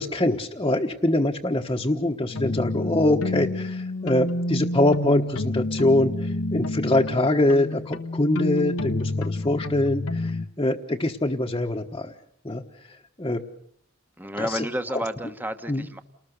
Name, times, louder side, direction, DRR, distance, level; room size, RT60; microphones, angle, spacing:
voice 1, 0.0-12.1 12.4-13.4 14.4-14.7 15.7-15.9, left 1 dB, 20° left, 0 dB, 1.3 m, -24 dB
sound 1, 2.3-10.5, left 1 dB, 85° left, 1.2 m, -29 dB
voice 2, 14.2-16.0, equal, 10° right, 8 dB, 1.4 m, -31 dB
30.0 x 20.0 x 6.7 m, 0.66 s
head